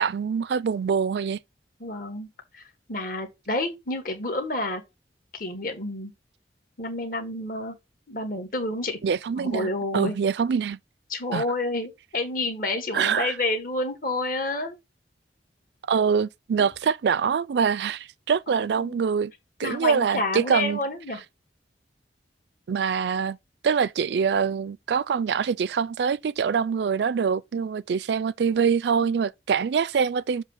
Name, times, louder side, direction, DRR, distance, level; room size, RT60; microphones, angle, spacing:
voice 1, 0.0-1.4 9.0-10.8 11.3-11.4 12.9-13.3 15.9-19.3 19.6-20.8 22.7-23.4 23.6-30.4, right 6 dB, 75° right, 0.4 m, -24 dB
voice 2, 1.8-2.3 2.5-2.6 2.9-4.8 5.3-6.1 6.8-7.7 8.1-9.0 9.4-10.1 11.1-14.8 16.6-16.7 18.5-19.0 19.6-21.2, left 2 dB, 50° left, 1.7 m, -29 dB
7.3 x 2.8 x 5.5 m
head